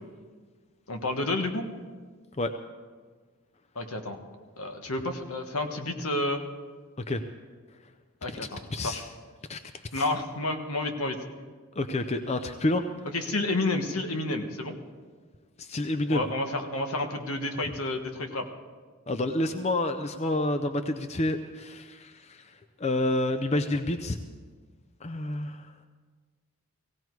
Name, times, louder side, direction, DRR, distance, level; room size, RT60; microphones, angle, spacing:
voice 1, 0.9-1.6 3.7-4.2 4.6-6.4 8.2-9.0 9.9-11.2 13.1-14.8 16.1-18.5, left 2 dB, 75° left, 5 dB, 1.4 m, -30 dB
voice 2, 8.7-9.1 9.5-9.6 9.9-10.1 11.8-12.8 15.6-16.3 19.1-24.2 25.0-25.7, left 1 dB, 30° left, 8 dB, 0.5 m, -29 dB
17.0 x 17.0 x 4.7 m, 1.5 s
head